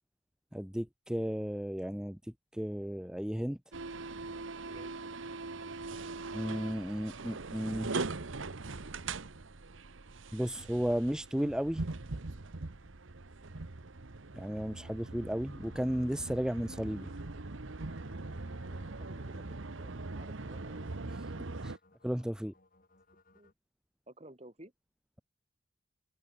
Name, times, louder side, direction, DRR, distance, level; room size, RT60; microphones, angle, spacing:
voice 1, 0.5-3.6 6.3-8.0 10.3-11.9 14.3-17.1 21.1-21.2 21.6-21.8 22.0-22.5, equal, 5° right, 0.6 m, -34 dB
sound 1, 3.7-21.8, right 3 dB, 75° right, 1.1 m, -41 dB
sound 2, 15.7-23.5, left 2 dB, 45° left, 5.1 m, -64 dB
voice 2, 18.7-21.2 23.3-23.5 24.1-24.7, right 1 dB, 30° right, 3.9 m, -55 dB
head